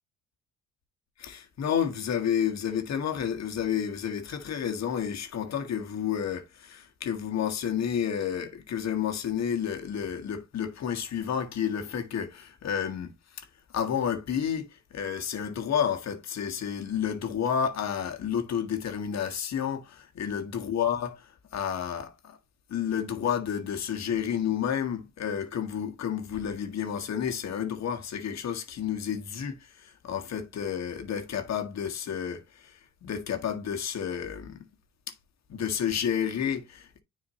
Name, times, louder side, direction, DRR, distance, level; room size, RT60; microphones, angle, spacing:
voice 1, 1.2-13.5 13.7-22.4 22.7-34.7 35.5-37.0, left 8 dB, 60° left, 1.7 m, -31 dB
9.6 x 4.6 x 2.8 m
cardioid pair, 90°, 30 cm